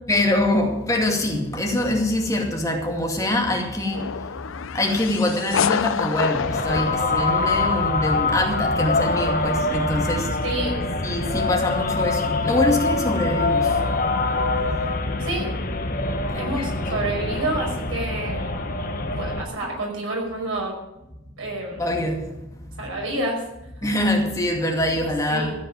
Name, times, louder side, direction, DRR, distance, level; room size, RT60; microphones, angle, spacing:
voice 1, 0.1-4.0 4.7-10.3 11.0-13.7 16.3-17.1 21.8-22.2 23.8-25.5, left 1 dB, 15° left, 1 dB, 2.3 m, -24 dB
sound 1, 3.9-8.0, left 7 dB, 80° left, 0.5 m, -28 dB
sound 2, 6.4-19.4, left 3 dB, 45° left, 1.2 m, -24 dB
voice 2, 10.4-10.8 15.2-15.5 16.4-18.4 19.1-20.7 21.4-21.9 22.8-23.4 25.3-25.5, right 1 dB, 90° right, 0 dB, 5.7 m, -28 dB
14.0 x 8.6 x 8.9 m, 0.92 s
head